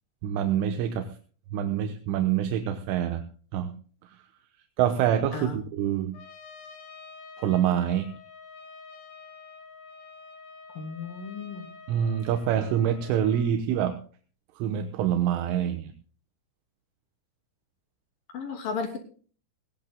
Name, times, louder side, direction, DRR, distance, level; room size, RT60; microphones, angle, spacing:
voice 1, 0.2-1.1 1.5-3.3 3.5-3.7 4.8-6.2 7.4-8.1 11.9-14.0 14.6-15.9, right 10 dB, 80° right, 6 dB, 3.5 m, -26 dB
Trumpet, 6.1-13.5, left 5 dB, 70° left, 4.9 m, -48 dB
voice 2, 10.8-11.7 18.3-19.0, left 4 dB, 50° left, 4 dB, 4.2 m, -34 dB
18.5 x 18.5 x 2.2 m, 0.41 s
omnidirectional pair, 5.7 m